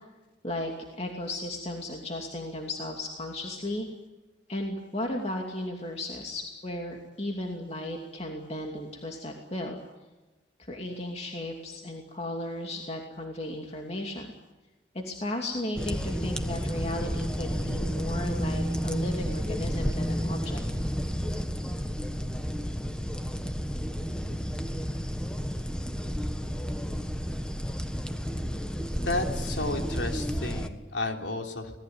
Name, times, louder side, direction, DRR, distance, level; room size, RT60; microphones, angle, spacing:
voice 1, 0.4-3.9 4.5-9.8 10.6-14.3 14.9-20.6, left 1 dB, 35° left, 1 dB, 2.6 m, -35 dB
sound 1, 15.8-30.7, equal, 5° left, 1.4 m, -31 dB
voice 2, 29.0-31.8, left 2 dB, 90° left, 3 dB, 3.5 m, -32 dB
26.5 x 19.5 x 9.5 m, 1.1 s
head